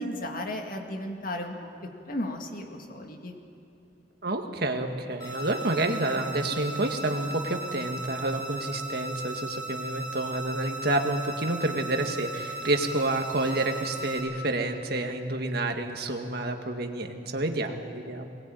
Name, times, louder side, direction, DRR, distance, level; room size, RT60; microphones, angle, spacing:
voice 1, 0.0-1.6 2.1-3.4, left 1 dB, 50° left, 3 dB, 2.3 m, -34 dB
voice 2, 4.2-18.3, right 2 dB, 60° right, 4 dB, 2.0 m, -29 dB
sound 1, 5.2-14.2, right 2 dB, 20° left, 6.1 m, -37 dB
22.5 x 19.5 x 9.3 m, 2.6 s
head